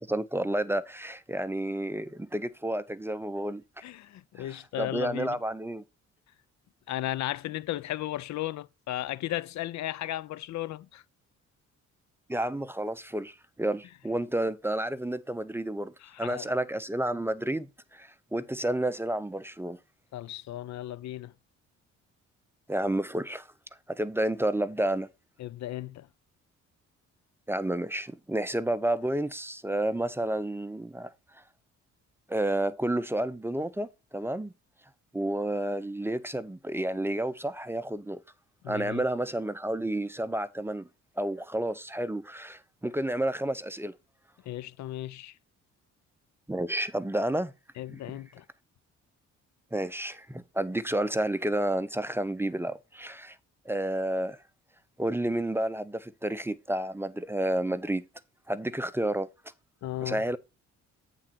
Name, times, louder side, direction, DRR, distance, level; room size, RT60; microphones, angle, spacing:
voice 1, 0.1-3.6 4.4-5.8 12.3-15.9 16.2-19.8 22.7-23.5 23.9-25.1 27.5-31.1 32.3-34.5 35.1-38.2 38.7-40.9 41.2-43.9 46.5-47.5 47.9-48.2 49.7-53.4 53.7-54.4 55.0-58.0 58.5-59.3 60.0-60.4, right 1 dB, 10° right, 0.6 m, -30 dB
voice 2, 3.8-5.4 6.9-11.0 16.0-16.5 20.1-21.3 25.4-26.1 38.6-39.0 44.5-45.3 47.8-48.4 59.8-60.2, left 14 dB, 65° left, 0.5 m, -35 dB
8.8 x 3.8 x 5.8 m
cardioid pair, 90°, 30 cm